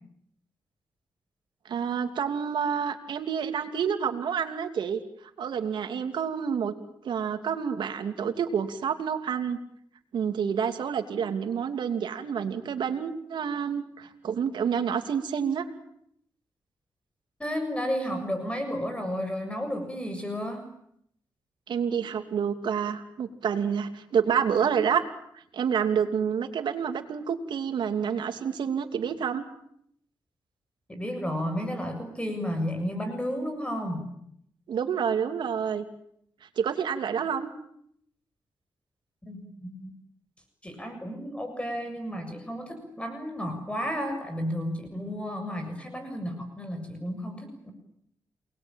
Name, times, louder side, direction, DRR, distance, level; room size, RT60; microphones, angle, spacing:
voice 1, 1.7-5.0 5.4-6.7 7.0-9.6 10.1-15.6 21.7-25.0 25.3-29.4 34.7-35.8 36.6-37.5, right 7 dB, 80° right, 8 dB, 2.8 m, -28 dB
voice 2, 17.4-20.7 30.9-34.1 39.2-39.9 40.6-47.7, equal, 15° left, 6 dB, 7.2 m, -32 dB
28.5 x 21.0 x 9.0 m, 0.72 s
cardioid pair, 70°, 8 cm